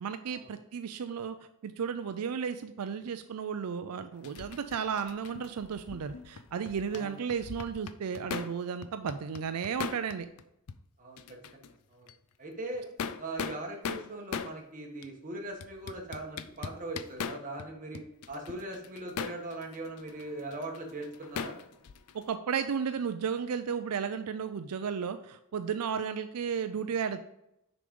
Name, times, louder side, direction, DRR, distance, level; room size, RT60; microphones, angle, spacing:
voice 1, 0.0-1.4 1.6-10.3 22.1-27.2, right 6 dB, 85° right, 10 dB, 0.4 m, -34 dB
sound 1, 4.2-7.0 7.3-8.6 8.8-10.4 10.7-10.8 11.2-11.7 12.1-12.2 12.7-14.6 15.0-15.1 15.6-17.7 17.9-22.3, left 6 dB, 90° left, 0.5 m, -39 dB
voice 2, 11.0-12.1 12.4-12.9 13.2-18.0 18.3-21.6, right 2 dB, 35° right, 1 dB, 1.5 m, -40 dB
6.7 x 5.1 x 5.3 m, 0.82 s
head